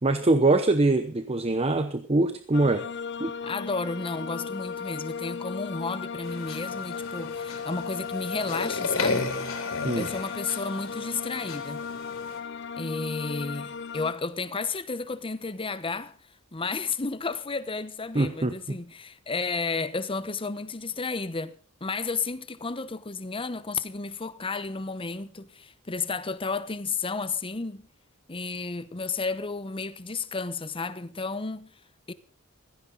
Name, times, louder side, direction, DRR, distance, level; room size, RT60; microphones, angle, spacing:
voice 1, 0.0-2.9 3.2-3.3 9.8-10.1 18.1-18.8, right 2 dB, 30° right, 0.9 m, -23 dB
sound 1, 2.5-14.1, left 6 dB, 60° left, 0.7 m, -36 dB
voice 2, 3.4-9.2 9.9-11.9 12.7-16.2 16.5-27.9 28.3-31.7 32.1-32.2, left 4 dB, 25° left, 0.9 m, -32 dB
sound 2, 6.2-12.4, left 3 dB, 80° left, 3.5 m, -34 dB
16.0 x 15.0 x 4.0 m
head